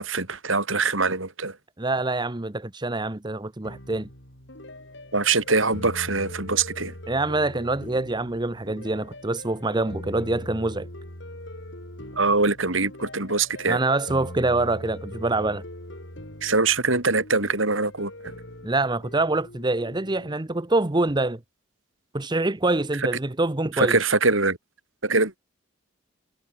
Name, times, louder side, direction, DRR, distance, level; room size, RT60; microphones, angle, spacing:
voice 1, 0.0-1.6 5.1-6.9 12.2-13.8 16.4-18.1 23.8-24.6 25.0-25.4, right 3 dB, 75° right, 5.0 m, -23 dB
voice 2, 1.8-4.1 7.1-10.9 13.7-15.6 18.6-21.4 22.1-24.0, right 2 dB, 20° right, 0.9 m, -25 dB
sound 1, 3.6-20.3, left 1 dB, 60° left, 7.7 m, -41 dB
head